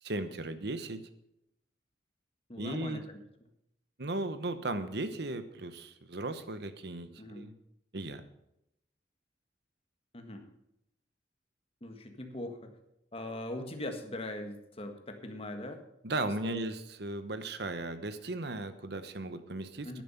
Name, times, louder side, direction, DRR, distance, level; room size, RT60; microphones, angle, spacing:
voice 1, 0.0-1.0 2.6-3.0 4.0-7.6 7.9-8.2 16.0-20.0, right 2 dB, 65° right, 10 dB, 1.0 m, -36 dB
voice 2, 2.5-3.2 7.2-7.4 10.1-10.5 11.8-12.7 13.1-15.8 16.4-16.6 19.8-20.0, left 1 dB, 30° left, 6 dB, 1.7 m, -41 dB
11.0 x 10.5 x 5.8 m, 0.81 s
head